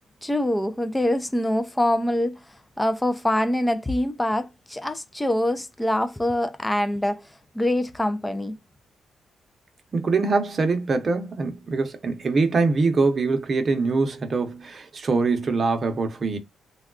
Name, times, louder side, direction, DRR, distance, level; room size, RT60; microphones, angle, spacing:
voice 1, 0.2-2.4 2.8-7.3 7.5-8.5, left 1 dB, 10° left, 0.4 m, -24 dB
voice 2, 9.9-16.4, right 3 dB, 45° right, 0.7 m, -23 dB
3.4 x 2.3 x 2.3 m
cardioid pair, 80°, 0 cm